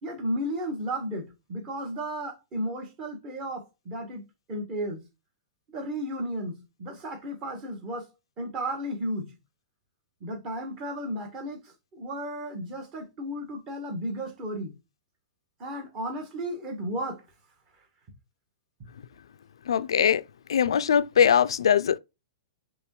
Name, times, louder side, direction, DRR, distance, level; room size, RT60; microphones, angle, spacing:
voice 1, 0.0-5.0 5.7-8.1 8.4-9.4 10.2-14.8 15.6-17.2, equal, 35° right, 1.5 m, -34 dB
voice 2, 19.7-20.2 20.5-22.0, left 8 dB, 70° left, 0.3 m, -21 dB
5.2 x 3.1 x 3.0 m
figure-of-eight pair, 110°, 3 cm